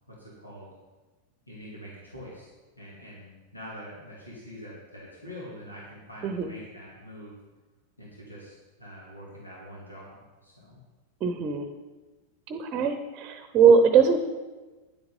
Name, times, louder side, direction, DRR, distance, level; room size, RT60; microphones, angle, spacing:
voice 1, 0.1-0.7 1.5-7.3 8.0-10.8, equal, 85° left, -4 dB, 2.4 m, -45 dB
voice 2, 6.2-6.5 11.2-11.7 12.5-14.2, right 6 dB, 35° right, 8 dB, 0.9 m, -21 dB
10.5 x 8.0 x 5.3 m, 1.2 s
figure-of-eight pair, 90°, 0 cm